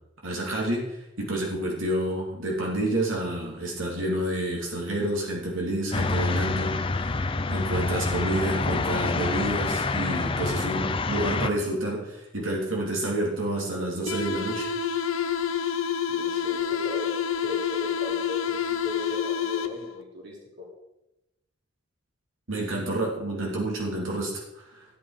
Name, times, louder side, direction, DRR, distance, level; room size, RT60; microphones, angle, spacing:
voice 1, 0.2-7.1 7.5-14.7 22.5-24.8, right 1 dB, 80° right, -3 dB, 3.4 m, -29 dB
sound 1, 5.9-11.5, left 3 dB, 25° left, 0.7 m, -27 dB
sound 2, 14.1-20.0, left 7 dB, 90° left, 0.9 m, -28 dB
voice 2, 16.1-20.7, left 2 dB, 55° right, -2 dB, 3.5 m, -38 dB
15.5 x 9.1 x 5.2 m, 0.92 s
head